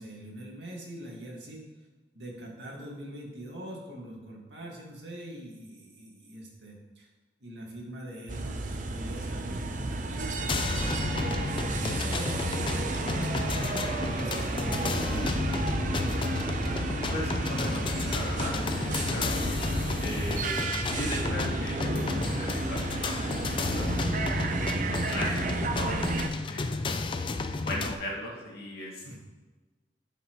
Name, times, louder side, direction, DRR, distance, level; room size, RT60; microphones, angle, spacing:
voice 1, 0.0-1.7 2.1-7.1 7.4-15.3 29.0-29.2, right 1 dB, 80° right, -2 dB, 2.0 m, -43 dB
sound 1, 8.3-26.3, right 2 dB, 50° right, 0.6 m, -32 dB
sound 2, 10.5-27.9, left 3 dB, 30° left, 0.4 m, -32 dB
voice 2, 16.6-19.3 20.0-20.5 20.8-26.7 27.2-29.2, left 1 dB, 60° left, -4 dB, 2.0 m, -38 dB
11.5 x 5.8 x 3.1 m, 1.2 s
head